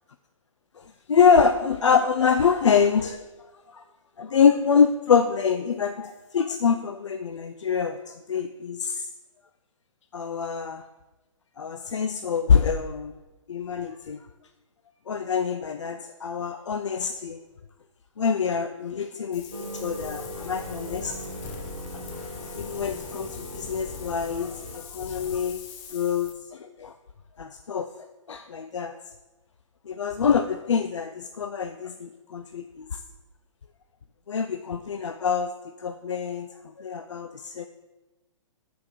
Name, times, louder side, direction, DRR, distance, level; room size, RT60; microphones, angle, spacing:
voice 1, 0.8-3.2 3.7-3.8 4.2-9.1 10.1-10.8 11.6-13.1 13.5-14.2 15.1-17.4 18.2-21.3 21.9-22.1 22.5-25.6 25.9-26.9 27.4-27.9 28.3-29.0 29.9-33.0 34.3-35.5 35.8-36.5 36.8-37.7, left 6 dB, 65° left, 8 dB, 0.4 m, -25 dB
Wind, 19.3-26.3, left 6 dB, 25° left, 0.6 m, -41 dB
sound 1, 19.5-24.8, right 2 dB, 85° right, 0.8 m, -40 dB
6.4 x 4.6 x 5.3 m, 1.1 s
figure-of-eight pair, 120°, 16 cm